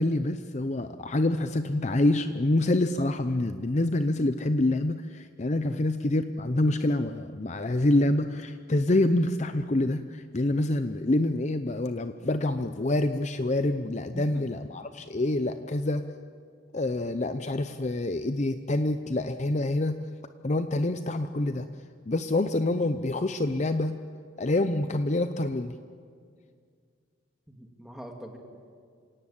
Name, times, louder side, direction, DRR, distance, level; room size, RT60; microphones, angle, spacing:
voice 1, 0.0-16.0 16.7-20.0 20.4-21.7 22.1-23.9 24.4-25.7, left 2 dB, 35° left, 9 dB, 0.6 m, -26 dB
voice 2, 27.5-28.4, equal, ahead, 2 dB, 2.3 m, -42 dB
27.0 x 17.5 x 8.7 m, 2.1 s
head